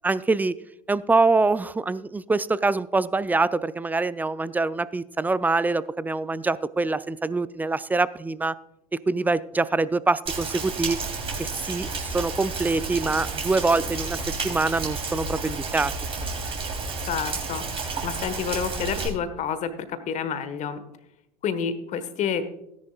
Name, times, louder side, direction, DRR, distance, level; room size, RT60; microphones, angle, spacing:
voice 1, 0.0-0.6 0.9-8.6 8.9-11.0 11.4-14.2 14.4-15.9, right 3 dB, 10° right, 18 dB, 0.4 m, -24 dB
Rain, 10.3-19.1, right 4 dB, 30° right, 3.2 m, -31 dB
voice 2, 17.1-17.6 18.0-20.8 21.4-22.4, left 7 dB, 40° left, 11 dB, 1.3 m, -29 dB
17.0 x 10.5 x 2.3 m, 0.84 s
figure-of-eight pair, 75°, 19 cm